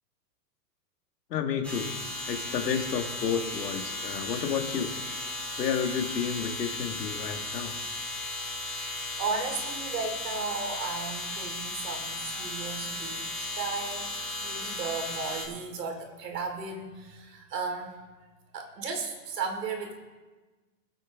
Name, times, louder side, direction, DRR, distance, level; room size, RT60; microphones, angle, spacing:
voice 1, 1.3-2.0 2.3-4.9 5.6-7.8, left 7 dB, 80° left, 5 dB, 1.8 m, -31 dB
sound 1, 1.6-15.4, left 2 dB, 5° left, 2.3 m, -36 dB
voice 2, 8.7-14.1 14.4-18.0 18.5-20.0, right 4 dB, 80° right, 4 dB, 3.0 m, -35 dB
22.0 x 8.0 x 3.6 m, 1.3 s
supercardioid pair, 165°, 48 cm